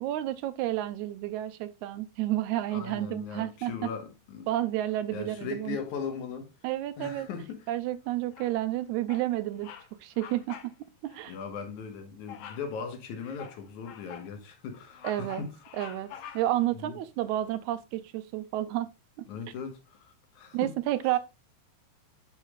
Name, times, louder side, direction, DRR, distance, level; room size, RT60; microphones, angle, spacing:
voice 1, 0.0-3.9 4.5-5.8 6.6-7.3 7.7-9.7 10.0-10.7 11.0-11.3 15.0-15.4 15.7-16.1 16.3-18.9 19.2-19.3 20.5-21.2, right 14 dB, 85° right, 2.1 m, -30 dB
voice 2, 2.7-4.5 5.1-6.5 7.0-7.7 11.3-15.5 16.8-16.9 19.3-20.7, left 6 dB, 85° left, 2.8 m, -39 dB
Bird vocalization bird call bird song, 8.3-8.7 9.1-9.3 9.6-9.9 10.1-10.7 11.1-11.2 12.3-12.7 13.2-14.3 14.7-16.7, left 9 dB, 70° left, 1.7 m, -46 dB
8.4 x 6.5 x 2.3 m
omnidirectional pair, 3.3 m